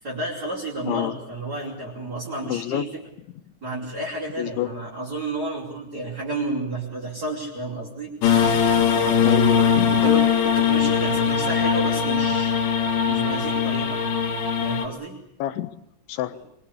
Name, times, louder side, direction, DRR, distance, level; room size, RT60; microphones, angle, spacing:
voice 1, 0.0-3.0 3.6-8.1 8.9-9.5 9.9-12.5 13.0-14.0 14.6-15.2, right 2 dB, 20° right, -3 dB, 5.0 m, -31 dB
voice 2, 0.9-1.2 2.5-2.9 4.4-4.7 9.2-10.2 15.4-15.7 16.1-16.4, left 13 dB, 85° left, 12 dB, 3.6 m, -27 dB
sound 1, 8.2-14.9, left 7 dB, 60° left, 3.7 m, -21 dB
24.5 x 24.5 x 8.6 m, 0.80 s
omnidirectional pair, 5.2 m